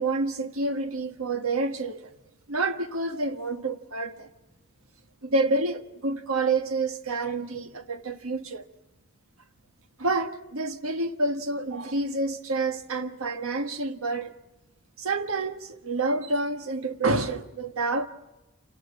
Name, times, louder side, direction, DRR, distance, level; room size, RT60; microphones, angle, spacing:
voice 1, 0.0-2.1 2.5-4.3 5.2-8.7 10.0-14.3 15.0-18.1, right 3 dB, 85° right, 1.5 m, -28 dB
28.0 x 19.0 x 7.4 m
head